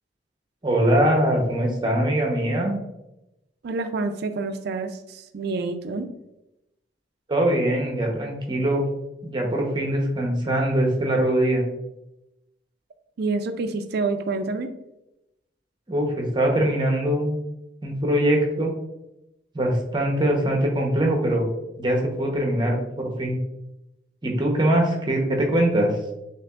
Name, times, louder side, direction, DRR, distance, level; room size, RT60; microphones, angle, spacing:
voice 1, 0.6-2.8 7.3-8.8 9.2-11.6 15.9-17.4 17.8-18.7 19.5-21.5 21.8-23.4 24.2-26.0, right 1 dB, 25° right, 1 dB, 0.8 m, -22 dB
voice 2, 3.6-6.1 13.2-14.7, right 3 dB, 60° right, 9 dB, 0.4 m, -28 dB
5.9 x 2.9 x 2.4 m, 0.91 s
head